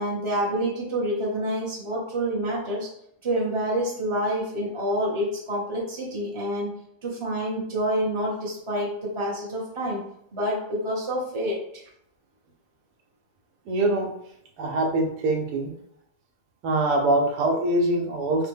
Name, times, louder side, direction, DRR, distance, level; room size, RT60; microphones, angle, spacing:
voice 1, 0.0-2.9 3.2-6.7 7.0-10.0 10.3-11.8, equal, 30° right, -4 dB, 0.5 m, -27 dB
voice 2, 13.7-14.1 14.6-15.7 16.6-18.5, right 2 dB, 90° right, 2 dB, 1.2 m, -23 dB
3.3 x 2.1 x 3.4 m, 0.72 s
omnidirectional pair, 1.7 m